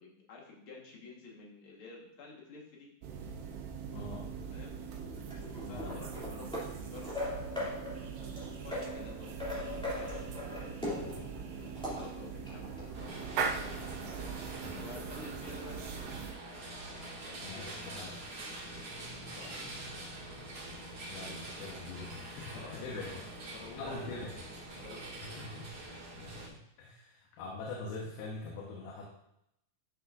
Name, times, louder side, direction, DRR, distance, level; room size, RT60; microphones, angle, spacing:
voice 1, 0.0-2.9 4.5-4.8 5.7-7.1 7.5-7.8 8.6-13.9 14.8-16.0 16.9-20.1 22.5-23.8 24.1-25.4, left 4 dB, 55° left, -2 dB, 1.6 m, -52 dB
sound 1, 3.0-16.3, right 6 dB, 75° right, 2.5 m, -41 dB
voice 2, 3.9-4.3 5.7-6.0 14.6-14.9 17.4-17.7 17.9-18.2 21.1-23.3 23.8-24.3 25.2-25.7 26.2-29.1, left 3 dB, 90° left, -2 dB, 3.0 m, -43 dB
sound 2, 5.0-12.9, left 1 dB, ahead, 1.7 m, -40 dB
sound 3, 12.9-26.5, right 1 dB, 40° right, 2.4 m, -45 dB
12.0 x 6.1 x 2.6 m, 0.78 s
omnidirectional pair, 4.3 m